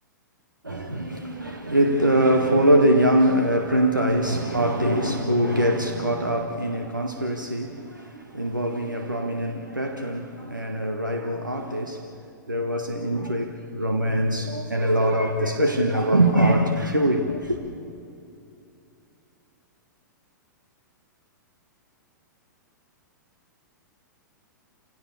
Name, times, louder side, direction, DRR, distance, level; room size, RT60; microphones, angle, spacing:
voice 1, 0.6-12.1 12.5-17.6, right 1 dB, 85° right, 1.8 m, -23 dB
28.5 x 17.5 x 6.9 m
figure-of-eight pair, 105°, 10 cm